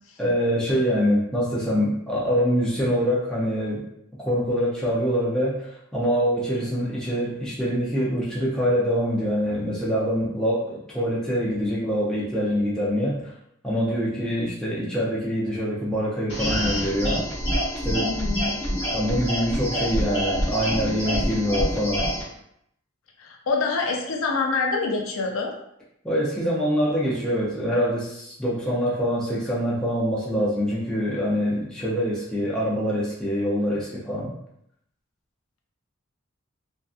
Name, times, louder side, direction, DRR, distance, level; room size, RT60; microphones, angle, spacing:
voice 1, 0.2-3.8 4.2-13.3 13.6-17.2 17.8-18.1 18.9-22.1 26.0-34.3, equal, 5° left, -7 dB, 0.5 m, -25 dB
sound 1, 16.3-22.2, equal, 25° left, 1.1 m, -26 dB
voice 2, 18.0-18.6 23.2-25.5, left 4 dB, 75° left, 0 dB, 0.5 m, -26 dB
2.6 x 2.3 x 2.4 m, 0.75 s
head